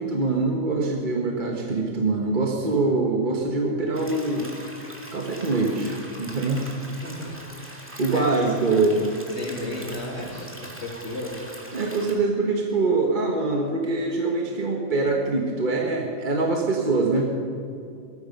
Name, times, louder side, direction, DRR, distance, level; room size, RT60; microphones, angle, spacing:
voice 1, 0.0-4.5 5.1-6.9 8.0-9.1 11.7-17.3, right 3 dB, 35° right, 1 dB, 1.4 m, -24 dB
sound 1, 3.9-12.1, right 1 dB, 10° right, 2.1 m, -42 dB
voice 2, 7.0-7.4 7.6-8.3 9.4-11.4, left 1 dB, 55° left, -2 dB, 3.3 m, -34 dB
18.5 x 13.5 x 5.3 m, 2.5 s
omnidirectional pair, 1.4 m